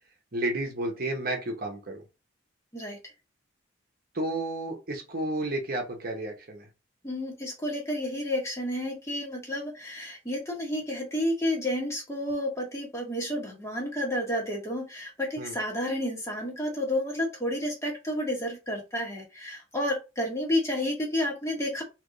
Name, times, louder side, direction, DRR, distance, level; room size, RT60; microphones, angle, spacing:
voice 1, 0.3-2.0 4.1-6.7 15.4-15.6, right 1 dB, 50° right, 3 dB, 0.9 m, -31 dB
voice 2, 7.0-21.8, left 1 dB, 15° left, -1 dB, 1.3 m, -31 dB
3.4 x 3.0 x 3.9 m, 0.28 s
head